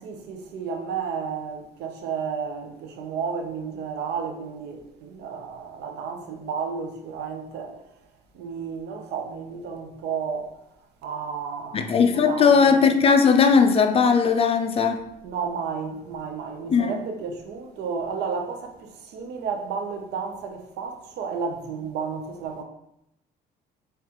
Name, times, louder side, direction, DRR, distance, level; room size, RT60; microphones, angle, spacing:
voice 1, 0.0-7.8 8.3-10.6 11.0-12.8 15.2-22.6, right 6 dB, 80° right, 0.7 m, -32 dB
voice 2, 11.7-15.0 16.7-17.0, left 5 dB, 35° left, 0.5 m, -18 dB
4.9 x 3.2 x 3.0 m
cardioid pair, 110°, 17 cm